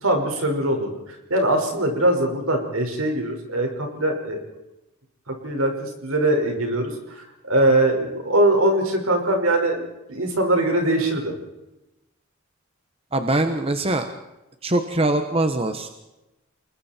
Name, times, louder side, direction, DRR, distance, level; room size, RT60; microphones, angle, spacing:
voice 1, 0.0-0.9 1.3-4.4 5.3-9.8 10.1-11.3, right 1 dB, 70° right, 3 dB, 5.4 m, -22 dB
voice 2, 13.1-14.1 14.6-15.9, right 2 dB, 25° right, 7 dB, 1.3 m, -22 dB
29.5 x 21.5 x 4.5 m, 0.96 s
head